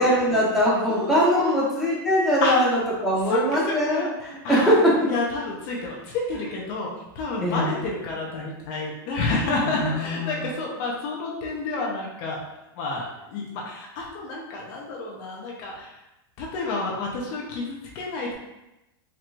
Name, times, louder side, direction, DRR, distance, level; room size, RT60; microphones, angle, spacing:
voice 1, 0.0-4.9 7.4-7.7 9.8-10.4, equal, ahead, -9 dB, 1.4 m, -22 dB
voice 2, 0.9-1.7 2.4-2.8 3.3-4.1 4.4-4.7 5.0-6.9 7.1-12.4 12.8-15.9 16.4-18.3, left 3 dB, 50° left, -2 dB, 0.8 m, -29 dB
4.5 x 3.1 x 2.5 m, 0.93 s
supercardioid pair, 140°, 13 cm